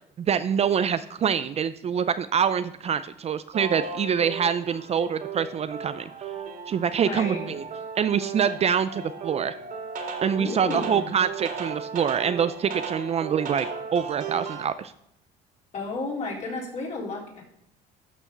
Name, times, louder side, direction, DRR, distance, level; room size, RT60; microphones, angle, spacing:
voice 1, 0.2-6.1 6.7-7.6 8.0-9.6 10.2-14.9, right 7 dB, 40° right, 13 dB, 0.4 m, -25 dB
sound 1, 3.5-14.7, right 5 dB, 55° right, 2.3 m, -36 dB
voice 2, 7.0-7.5 10.3-11.1 15.7-17.4, left 3 dB, 45° left, -3 dB, 3.8 m, -32 dB
12.0 x 6.2 x 3.9 m, 0.78 s
cardioid pair, 110°, 17 cm